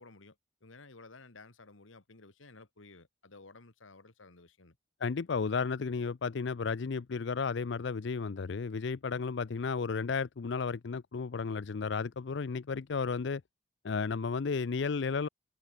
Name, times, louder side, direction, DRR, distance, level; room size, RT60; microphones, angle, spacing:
voice 1, 0.0-4.8, left 3 dB, 80° left, 1.9 m, -55 dB
voice 2, 5.0-13.4 13.8-15.3, left 5 dB, 60° left, 0.5 m, -33 dB
head